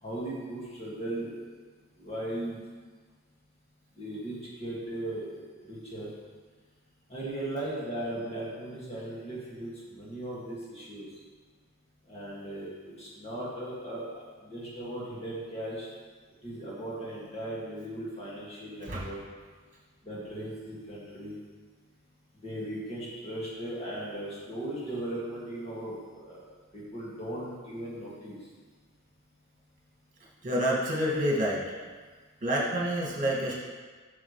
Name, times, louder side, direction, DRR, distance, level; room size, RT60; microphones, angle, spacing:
voice 1, 0.0-1.4 2.0-2.6 4.0-6.1 7.1-11.1 12.1-15.9 16.4-19.2 20.0-21.4 22.3-26.4 26.7-28.5, right 1 dB, 30° left, -7 dB, 2.3 m, -37 dB
voice 2, 30.4-31.6 32.4-33.5, equal, 40° right, -5 dB, 2.1 m, -28 dB
9.4 x 6.4 x 3.3 m, 1.5 s
head